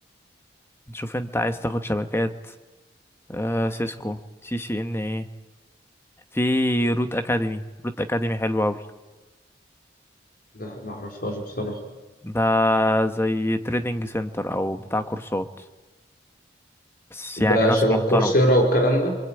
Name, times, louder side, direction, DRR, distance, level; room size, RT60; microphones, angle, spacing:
voice 1, 0.9-2.3 3.3-5.3 6.3-8.8 12.2-15.5 17.1-17.8 18.1-18.3, left 1 dB, 15° left, 8 dB, 1.4 m, -25 dB
voice 2, 10.5-11.8 17.4-19.2, equal, 50° left, 2 dB, 4.9 m, -21 dB
27.5 x 23.5 x 9.2 m, 1.1 s
head